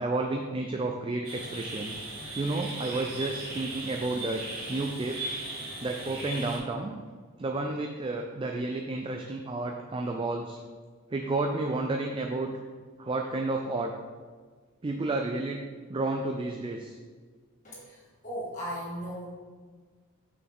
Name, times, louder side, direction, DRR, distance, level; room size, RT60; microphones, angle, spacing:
voice 1, 0.0-1.9 2.4-4.4 4.7-5.2 5.8-7.0 7.4-10.6 11.1-12.5 13.0-13.9 14.8-15.6 15.9-17.0, right 2 dB, 25° right, 3 dB, 0.3 m, -31 dB
sound 1, 1.2-6.6, right 2 dB, 70° right, 1.9 m, -38 dB
voice 2, 17.6-18.0 18.2-19.3, equal, 35° left, -6 dB, 1.6 m, -36 dB
6.2 x 5.7 x 3.5 m, 1.5 s
head